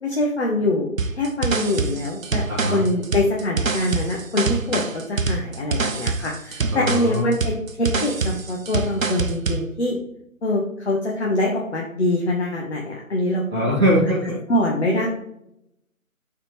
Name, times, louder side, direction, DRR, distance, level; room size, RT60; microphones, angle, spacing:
voice 1, 0.0-2.4 2.7-4.8 5.1-10.0 10.4-13.6 14.5-15.1, left 1 dB, 50° left, -1 dB, 1.1 m, -24 dB
sound 1, 1.0-9.7, right 4 dB, 70° right, 0.7 m, -25 dB
voice 2, 2.5-2.8 6.7-7.3 13.5-14.4, equal, 10° right, -16 dB, 1.1 m, -21 dB
8.0 x 4.2 x 3.3 m, 0.80 s
figure-of-eight pair, 155°, 42 cm